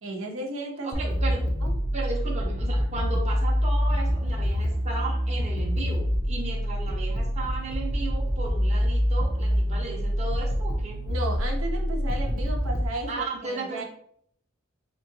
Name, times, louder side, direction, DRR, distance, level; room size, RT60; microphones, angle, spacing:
voice 1, 0.0-1.0 1.6-1.7 11.0-13.8, right 2 dB, 85° right, 1 dB, 0.7 m, -34 dB
voice 2, 0.8-1.4 1.9-11.0 13.1-13.8, right 2 dB, 35° right, -1 dB, 0.7 m, -35 dB
sound 1, 0.9-12.9, equal, 40° left, 0.5 m, -26 dB
3.7 x 3.0 x 2.6 m, 0.65 s
head